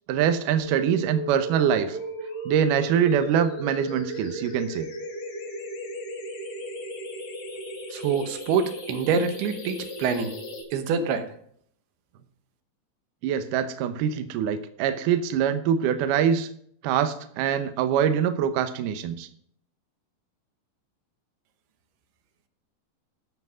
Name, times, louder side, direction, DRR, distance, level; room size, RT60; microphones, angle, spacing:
voice 1, 0.1-2.0 2.5-4.9 13.2-16.5 16.8-19.3, right 8 dB, 75° right, 9 dB, 2.1 m, -24 dB
sound 1, 0.6-10.6, right 1 dB, 70° left, 5.0 m, -36 dB
voice 2, 7.9-10.3 10.7-11.2, right 6 dB, 90° right, 8 dB, 3.1 m, -25 dB
13.5 x 5.8 x 6.2 m, 0.64 s
omnidirectional pair, 4.5 m